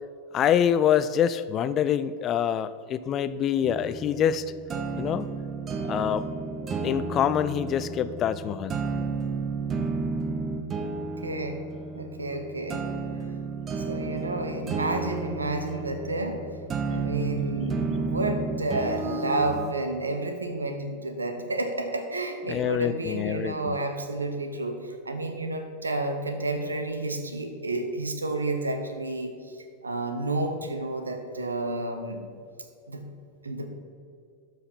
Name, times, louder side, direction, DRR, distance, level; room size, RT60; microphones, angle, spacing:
voice 1, 0.3-4.4 5.0-5.3 5.9-6.2 6.8-8.7 22.5-23.8, left 9 dB, 30° left, 14 dB, 0.4 m, -25 dB
sound 1, 3.6-19.7, right 4 dB, 25° right, 0.8 m, -32 dB
voice 2, 11.2-11.6 11.9-12.8 13.9-16.4 16.9-29.3 29.6-32.2 32.9-33.0 33.4-33.7, right 2 dB, 75° right, 6 dB, 1.0 m, -30 dB
12.5 x 6.5 x 4.2 m, 2.4 s
figure-of-eight pair, 90°, 0 cm